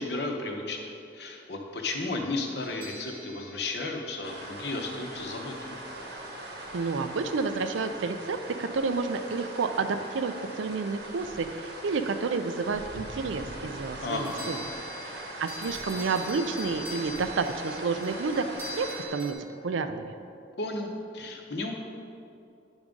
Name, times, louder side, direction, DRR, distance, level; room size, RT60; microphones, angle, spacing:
voice 1, 0.0-5.8 14.0-14.6 20.6-21.7, left 2 dB, 60° left, 2 dB, 0.8 m, -34 dB
sound 1, 2.6-4.9 14.1-19.3, equal, 10° right, 0.9 m, -43 dB
sound 2, 4.2-19.1, right 1 dB, 65° right, 1.0 m, -41 dB
voice 2, 6.7-14.6 15.1-19.4 19.6-20.1, right 4 dB, 85° right, 9 dB, 0.4 m, -30 dB
9.7 x 3.6 x 5.1 m, 2.6 s
head